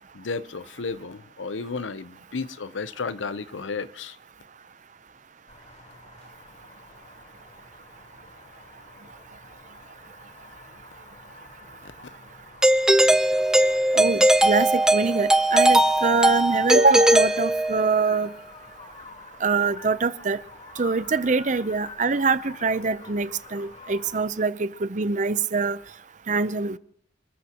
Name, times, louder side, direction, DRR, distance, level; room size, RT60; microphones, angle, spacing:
voice 1, 0.1-4.2 12.0-12.1, left 4 dB, 90° left, 0.7 m, -33 dB
sound 1, 5.5-24.3, left 3 dB, 35° left, 3.8 m, -46 dB
Doorbell, 12.6-18.0, right 1 dB, 5° right, 0.6 m, -19 dB
voice 2, 13.9-18.3 19.4-20.4 20.8-25.8 26.3-26.8, right 4 dB, 40° right, 0.6 m, -24 dB
28.5 x 14.0 x 2.9 m
head